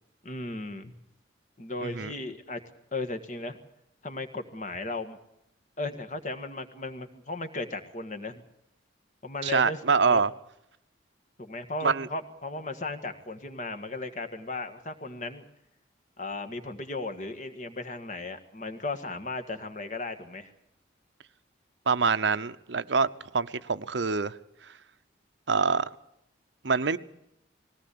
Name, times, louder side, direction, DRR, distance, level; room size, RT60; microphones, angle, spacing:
voice 1, 0.2-0.9 1.6-2.6 2.9-3.6 4.0-5.2 5.8-8.4 9.2-10.2 11.4-15.5 16.2-20.5, left 2 dB, 40° left, 1.8 m, -36 dB
voice 2, 9.4-10.3 11.8-12.1 21.9-23.1 23.3-24.4 25.5-25.9 26.6-27.0, right 5 dB, 75° right, 0.8 m, -25 dB
20.5 x 17.0 x 8.5 m
head